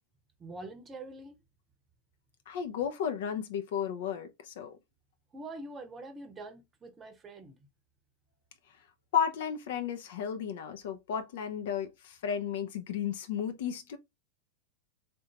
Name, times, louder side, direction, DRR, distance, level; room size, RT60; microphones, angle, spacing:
voice 1, 0.4-1.4 5.3-7.6, right 2 dB, 20° right, 0.9 m, -44 dB
voice 2, 2.5-4.8 9.1-14.0, left 8 dB, 55° left, 0.7 m, -33 dB
3.7 x 2.6 x 2.9 m
figure-of-eight pair, 90°, 0 cm